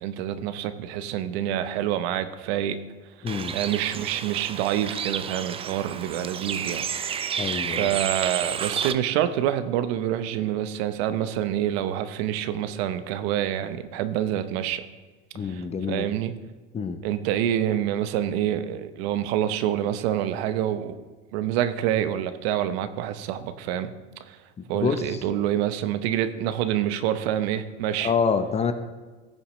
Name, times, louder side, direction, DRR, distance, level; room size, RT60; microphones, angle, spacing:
voice 1, 0.0-2.8 3.2-14.9 15.4-16.3 17.0-21.0 21.3-23.9 24.3-24.4 24.7-28.1, right 11 dB, 70° right, 11 dB, 0.9 m, -27 dB
voice 2, 3.2-3.5 7.4-7.9 15.3-16.1 16.7-17.0 24.7-25.2 28.0-28.7, left 5 dB, 20° left, 10 dB, 0.7 m, -26 dB
Bird, 3.3-8.9, right 8 dB, 20° right, 0.3 m, -31 dB
16.0 x 7.1 x 3.1 m, 1.4 s
supercardioid pair, 115°, 32 cm